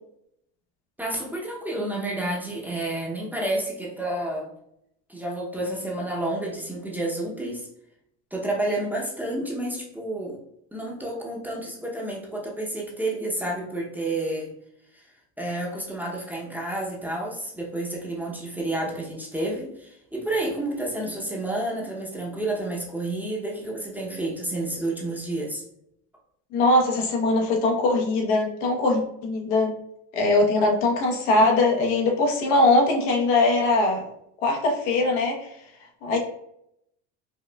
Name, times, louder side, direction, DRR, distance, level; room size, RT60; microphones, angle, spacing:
voice 1, 1.0-4.5 5.1-7.7 8.3-10.4 10.7-14.5 14.9-25.6, right 1 dB, 5° right, -3 dB, 0.6 m, -30 dB
voice 2, 26.5-29.7 30.1-34.0 34.4-35.5 36.0-36.2, left 2 dB, 85° left, 1 dB, 1.0 m, -21 dB
4.9 x 2.3 x 2.2 m, 0.76 s
cardioid pair, 125°, 33 cm